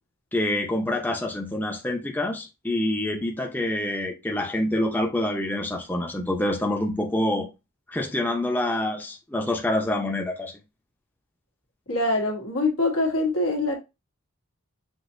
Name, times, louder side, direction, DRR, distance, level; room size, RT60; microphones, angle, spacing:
voice 1, 0.3-7.5 7.9-10.5, left 1 dB, 10° left, 0.6 m, -26 dB
voice 2, 11.9-13.8, left 2 dB, 85° left, 1.5 m, -24 dB
6.1 x 2.8 x 2.6 m
head